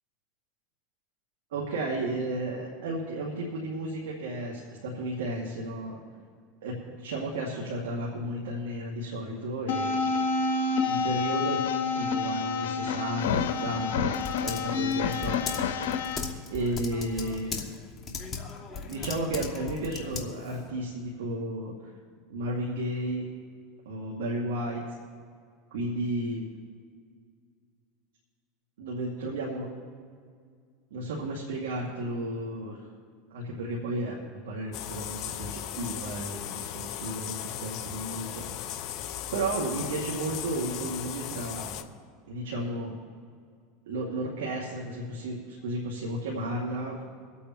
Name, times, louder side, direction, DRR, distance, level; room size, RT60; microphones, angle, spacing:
voice 1, 1.5-6.0 6.6-10.1 10.8-11.6 12.0-15.4 16.5-17.7 18.9-21.7 22.3-23.2 23.9-24.8 25.7-26.4 28.8-29.7 30.9-32.8 33.3-38.5 39.3-41.8 42.3-43.0 43.9-47.0, right 1 dB, 90° right, -3 dB, 2.1 m, -33 dB
sound 1, 9.7-16.2, left 5 dB, 85° left, 1.0 m, -28 dB
Typing, 13.2-20.7, left 5 dB, 30° left, 1.5 m, -39 dB
sound 2, 34.7-41.8, left 11 dB, 50° left, 0.7 m, -37 dB
24.0 x 8.5 x 3.0 m, 2.1 s
supercardioid pair, 125°, 0 cm